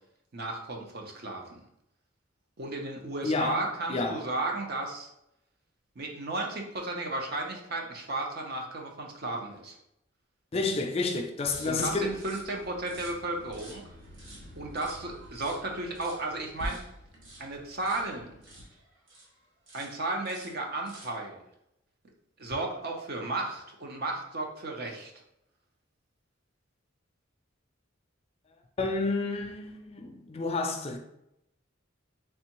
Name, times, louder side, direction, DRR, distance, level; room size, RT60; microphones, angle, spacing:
voice 1, 0.3-1.6 2.6-5.1 6.0-9.8 11.6-13.8 14.6-16.8 17.4-18.3 19.7-21.4 22.4-25.1, right 2 dB, 55° right, 0.7 m, -34 dB
voice 2, 3.2-3.6 3.9-4.2 10.5-12.2 28.8-31.0, left 3 dB, 30° left, 0.4 m, -30 dB
sound 1, 11.4-19.3 19.7-20.0 20.2-21.2, equal, 70° right, 1.2 m, -47 dB
3.5 x 3.4 x 3.0 m
head